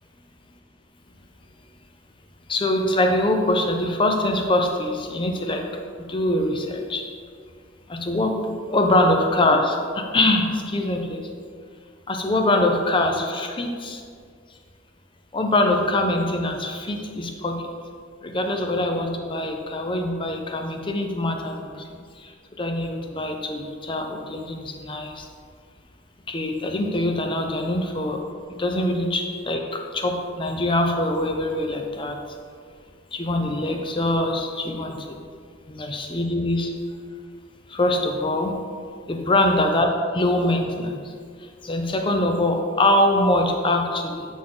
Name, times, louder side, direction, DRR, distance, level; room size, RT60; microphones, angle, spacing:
voice 1, 2.5-5.7 6.0-7.0 7.9-11.3 12.1-14.0 15.3-17.7 18.2-21.9 22.2-25.3 26.3-28.2 28.5-32.2 33.1-35.2 35.7-36.7 37.7-38.5 39.1-41.1 41.6-44.3, left 1 dB, 25° left, 4 dB, 0.5 m, -23 dB
7.7 x 4.1 x 3.8 m, 2.1 s
head